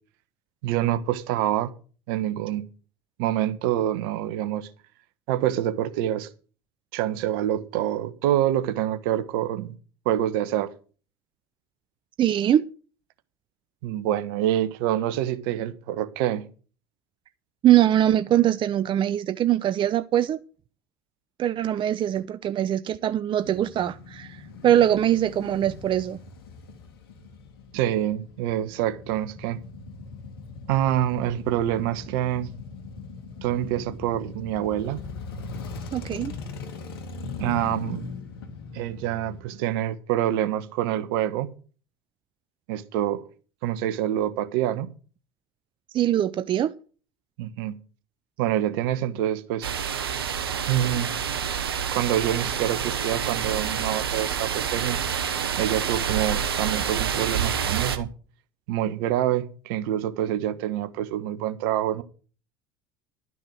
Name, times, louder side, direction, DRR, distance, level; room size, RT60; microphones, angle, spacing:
voice 1, 0.6-1.7 2.1-2.7 3.2-4.7 5.3-6.3 6.9-9.7 10.0-10.7 13.8-16.4 27.7-29.6 30.7-32.5 33.4-35.1 37.4-38.1 38.7-41.5 42.7-43.2 43.6-44.9 47.4-47.8 48.4-49.7 50.7-51.2 51.9-55.0 55.6-58.1 58.7-62.0, right 12 dB, 70° right, 1.3 m, -26 dB
voice 2, 12.2-12.6 17.6-20.4 21.4-26.2 35.9-36.3 45.9-46.7, right 11 dB, 45° right, 0.7 m, -22 dB
Male speech man speaking / Motorcycle / Idling, 23.4-39.4, left 4 dB, 80° left, 2.2 m, -40 dB
sound 1, 49.6-58.0, right 7 dB, 90° right, 1.1 m, -28 dB
12.0 x 6.2 x 7.9 m
hypercardioid pair, 70°, 12 cm